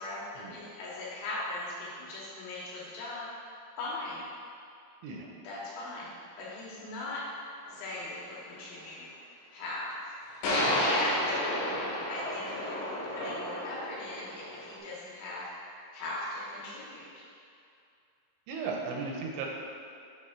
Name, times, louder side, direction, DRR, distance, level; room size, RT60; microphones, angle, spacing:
voice 1, 0.0-3.3 3.8-4.2 5.4-6.1 6.4-7.3 7.7-9.0 9.5-10.1 10.8-11.4 12.1-15.5 15.9-17.2, left 2 dB, 85° left, -6 dB, 3.7 m, -39 dB
sound 1, 7.7-7.8 10.4-14.8, left 1 dB, 70° left, 3.4 m, -31 dB
voice 2, 18.5-19.5, right 4 dB, 80° right, 0 dB, 2.8 m, -36 dB
8.8 x 3.3 x 4.2 m, 2.5 s
omnidirectional pair, 5.3 m